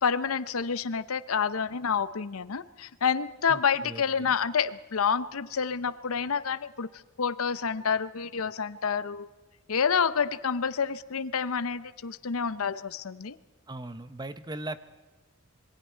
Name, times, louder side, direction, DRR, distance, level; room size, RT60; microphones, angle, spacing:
voice 1, 0.0-6.9 7.2-9.3 9.7-13.4, left 6 dB, 80° left, 15 dB, 0.7 m, -28 dB
voice 2, 3.5-4.4 13.7-14.8, right 2 dB, 20° right, 12 dB, 0.7 m, -39 dB
26.0 x 22.0 x 4.5 m, 1.2 s
head